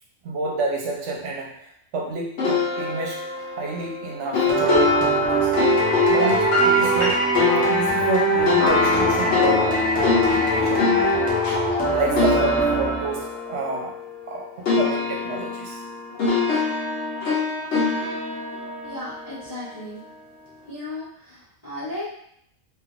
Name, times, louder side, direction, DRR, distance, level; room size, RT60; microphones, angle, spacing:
voice 1, 0.2-5.5 6.1-7.3 7.7-14.0 14.2-15.8, right 3 dB, 65° right, 0 dB, 1.0 m, -29 dB
sound 1, 2.4-14.4 14.7-19.9, left 4 dB, 65° left, 1.1 m, -24 dB
sound 2, 4.5-13.4, right 2 dB, 10° left, 0.6 m, -22 dB
voice 2, 18.8-20.0 20.7-22.0, left 1 dB, 30° left, -14 dB, 1.3 m, -35 dB
3.3 x 2.8 x 2.4 m, 0.69 s
omnidirectional pair, 1.3 m